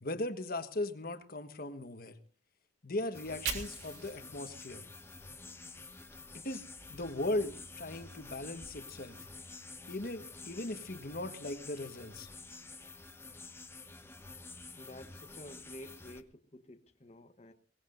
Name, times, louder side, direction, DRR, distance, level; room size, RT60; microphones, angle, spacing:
voice 1, 0.0-2.2 2.8-4.8 6.4-6.6 6.9-9.3 9.9-12.3, left 1 dB, 55° left, 1.4 m, -38 dB
sound 1, 3.1-16.2, left 3 dB, 15° left, 1.0 m, -49 dB
Fire, 3.1-6.2 6.6-8.6, right 6 dB, 75° right, 3.5 m, -46 dB
voice 2, 14.8-17.5, left 1 dB, 40° left, 1.1 m, -51 dB
22.5 x 18.5 x 2.6 m
head